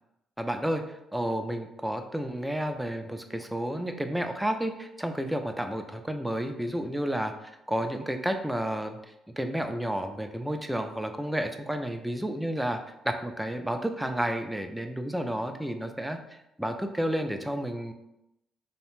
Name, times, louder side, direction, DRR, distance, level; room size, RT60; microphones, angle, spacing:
voice 1, 0.4-9.0 9.4-12.8 13.0-17.9, right 1 dB, 5° right, 6 dB, 0.3 m, -31 dB
2.7 x 2.0 x 3.0 m, 0.86 s
cardioid pair, 90°, 0 cm